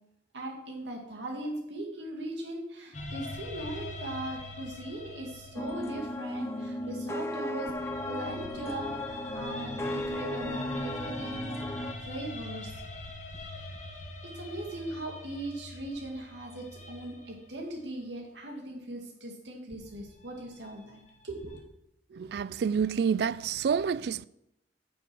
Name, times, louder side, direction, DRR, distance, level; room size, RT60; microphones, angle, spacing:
voice 1, 0.3-12.7 14.2-21.6, right 1 dB, 85° right, 2.3 m, -39 dB
sound 1, 2.9-7.2 7.7-17.7 19.7-21.6, left 1 dB, 40° left, 1.4 m, -43 dB
sound 2, 5.6-11.9, left 1 dB, 15° left, 0.6 m, -35 dB
voice 2, 22.1-24.3, right 6 dB, 65° right, 0.3 m, -28 dB
9.0 x 6.3 x 6.0 m
head